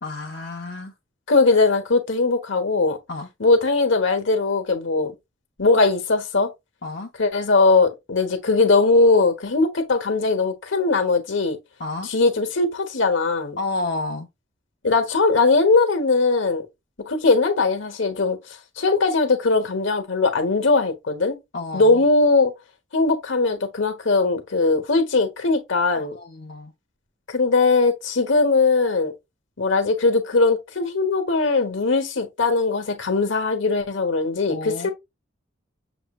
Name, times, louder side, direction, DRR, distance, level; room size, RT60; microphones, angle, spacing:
voice 1, 0.0-0.9 3.1-3.3 6.8-7.1 11.8-12.1 13.6-14.3 21.5-22.0 26.0-26.7 34.5-34.9, left 2 dB, 55° left, 0.8 m, -30 dB
voice 2, 1.3-3.0 3.4-5.1 5.6-6.5 7.2-11.6 12.1-13.6 14.8-16.6 17.1-18.4 18.8-21.4 21.7-22.5 22.9-26.2 27.3-29.1 29.6-34.9, left 3 dB, 70° left, 1.1 m, -20 dB
6.9 x 3.1 x 2.3 m
head